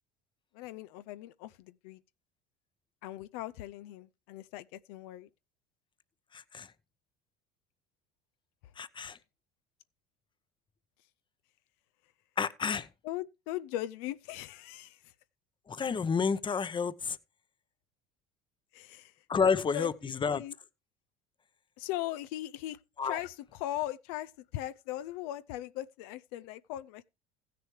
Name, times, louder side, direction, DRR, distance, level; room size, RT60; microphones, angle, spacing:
voice 1, 0.5-2.0 3.0-5.3 13.0-15.1 18.7-20.5 21.8-27.0, left 14 dB, 70° left, 0.5 m, -39 dB
voice 2, 6.3-6.7 8.8-9.2 12.4-12.9 15.7-17.2 19.3-20.4 23.0-23.2, left 5 dB, 25° left, 0.8 m, -30 dB
16.0 x 6.7 x 3.2 m
hypercardioid pair, 75°, 20 cm